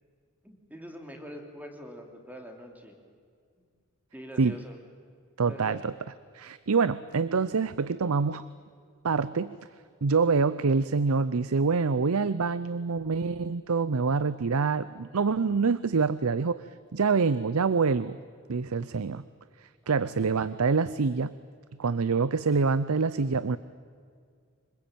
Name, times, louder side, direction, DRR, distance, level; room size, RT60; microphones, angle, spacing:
voice 1, 0.4-3.0 3.6-3.7 4.1-4.8 5.4-5.9 19.8-20.1, equal, 10° right, 3 dB, 3.3 m, -44 dB
voice 2, 5.4-5.9 6.3-8.4 9.0-9.6 10.0-16.6 16.9-18.2 18.5-19.2 19.6-21.3 21.8-23.6, right 4 dB, 85° right, 16 dB, 0.6 m, -26 dB
25.5 x 21.5 x 9.1 m, 2.1 s
head